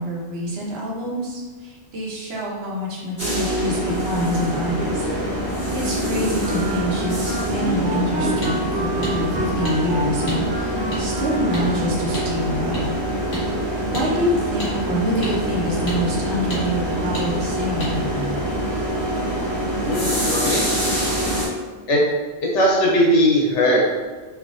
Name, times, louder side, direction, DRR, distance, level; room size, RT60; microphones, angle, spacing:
voice 1, 0.0-5.0 5.7-12.9 13.9-18.4, equal, 65° right, -4 dB, 0.9 m, -26 dB
Llegada y partida de tren subterráneo, 3.2-21.5, equal, 20° right, 0.8 m, -25 dB
Wind instrument woodwind instrument, 6.4-12.1, right 2 dB, 85° right, 1.3 m, -31 dB
Hammer metal, 8.4-8.5 9.0-9.1 9.6-9.8 10.3-10.4 10.9-11.0 11.5-11.7 12.1-12.3 12.7-12.8 13.3-13.4 13.9-14.1 14.6-14.7 15.2-15.3 15.9-16.0 16.5-16.6 17.1-17.3 17.8-17.9, equal, 50° left, 1.2 m, -29 dB
voice 2, 19.8-20.6 21.9-22.0 22.4-23.8, equal, 80° left, -2 dB, 1.0 m, -18 dB
3.3 x 2.4 x 2.5 m, 1.4 s
omnidirectional pair, 1.2 m